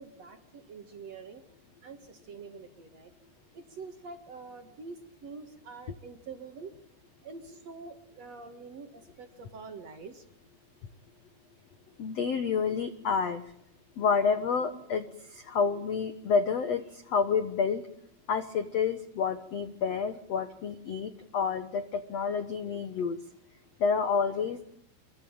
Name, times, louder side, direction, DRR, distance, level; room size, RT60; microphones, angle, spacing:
voice 1, 0.0-1.4 1.8-3.1 3.5-6.7 7.2-10.3, right 4 dB, 50° right, 6 dB, 2.3 m, -46 dB
voice 2, 12.0-13.4 14.0-17.9 18.3-23.2 23.8-24.7, left 5 dB, 75° left, 10 dB, 1.4 m, -29 dB
25.5 x 23.0 x 8.9 m, 0.71 s
omnidirectional pair, 5.1 m